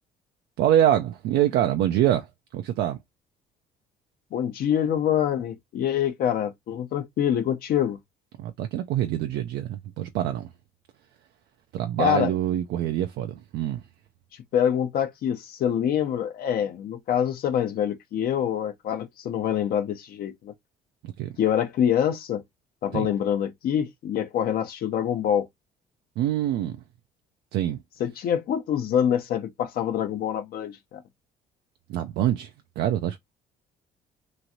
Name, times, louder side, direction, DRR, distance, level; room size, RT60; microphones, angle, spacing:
voice 1, 0.6-2.3 2.5-3.0 8.4-10.5 11.7-13.8 21.0-21.3 22.9-23.1 26.2-26.8 27.5-27.8 31.9-32.5 32.8-33.2, right 11 dB, 75° right, 0.4 m, -25 dB
voice 2, 4.3-8.0 12.0-12.3 14.5-20.5 21.4-22.4 22.8-25.5 28.0-31.0, left 9 dB, 65° left, 0.8 m, -25 dB
3.0 x 2.5 x 2.6 m
cardioid pair, 110°, 17 cm